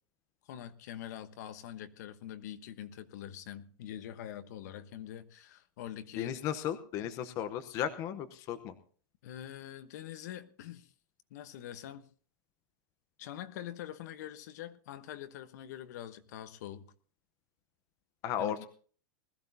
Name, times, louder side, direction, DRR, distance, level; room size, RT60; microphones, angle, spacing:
voice 1, 0.5-6.4 9.2-10.9 11.3-12.1 13.2-16.8 18.4-18.7, left 11 dB, 55° left, 1.1 m, -44 dB
voice 2, 6.2-8.7 18.2-18.7, left 9 dB, 30° left, 0.9 m, -35 dB
20.5 x 14.0 x 2.8 m
supercardioid pair, 165°, 11 cm